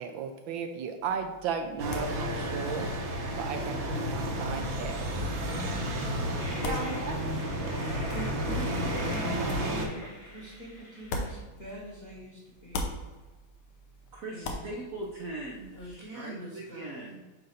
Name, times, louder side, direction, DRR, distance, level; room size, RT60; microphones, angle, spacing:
voice 1, 0.0-2.9 3.4-5.0, right 6 dB, 75° right, 6 dB, 1.2 m, -35 dB
sound 1, 1.0-12.2 12.5-15.9, left 2 dB, 80° left, 1.7 m, -43 dB
sound 2, 1.8-9.8, equal, 50° right, 1.2 m, -31 dB
Train, 6.4-11.4, left 1 dB, 60° left, 2.0 m, -45 dB
voice 2, 8.1-13.0 14.3-14.7 15.7-17.1, right 1 dB, 35° left, -4 dB, 1.2 m, -44 dB
voice 3, 14.1-17.2, right 2 dB, 90° right, 0 dB, 0.7 m, -40 dB
7.7 x 2.6 x 5.7 m, 1.2 s
omnidirectional pair, 2.4 m